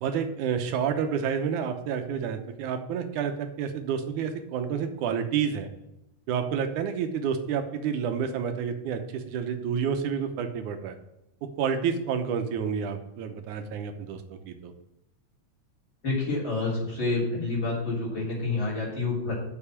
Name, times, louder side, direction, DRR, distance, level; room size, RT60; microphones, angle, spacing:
voice 1, 0.0-5.7 6.3-11.0 11.4-14.7, right 7 dB, 80° right, 7 dB, 2.3 m, -29 dB
voice 2, 16.0-19.4, left 3 dB, 35° left, -6 dB, 3.9 m, -28 dB
6.8 x 6.0 x 7.1 m, 0.88 s
omnidirectional pair, 3.6 m